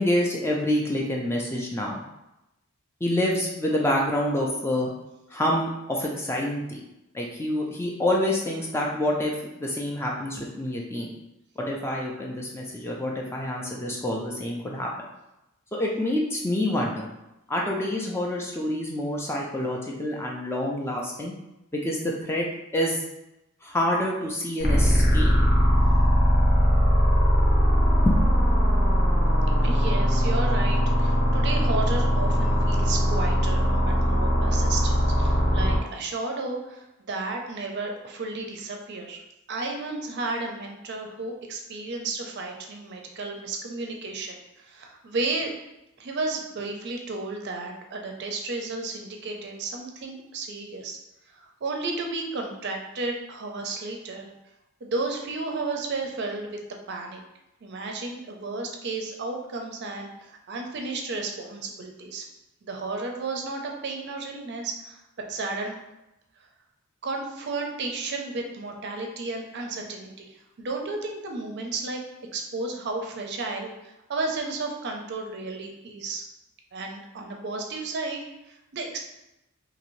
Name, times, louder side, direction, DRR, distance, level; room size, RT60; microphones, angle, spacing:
voice 1, 0.0-2.0 3.0-4.9 5.3-6.8 7.1-9.3 9.6-11.1 11.6-14.9 15.7-17.1 17.5-21.3 21.7-22.5 22.7-23.0 23.6-25.3 28.1-28.3, left 1 dB, 10° left, -2 dB, 0.3 m, -27 dB
sound 1, 24.6-35.8, equal, 50° left, 0.7 m, -20 dB
voice 2, 29.6-39.2 39.5-45.5 46.0-51.0 51.3-54.3 54.8-56.6 56.9-57.2 57.6-62.3 62.6-65.0 65.3-65.7 67.0-72.0 72.3-76.2 76.7-79.0, right 3 dB, 50° right, 2 dB, 0.4 m, -33 dB
2.8 x 2.5 x 3.0 m, 0.92 s
head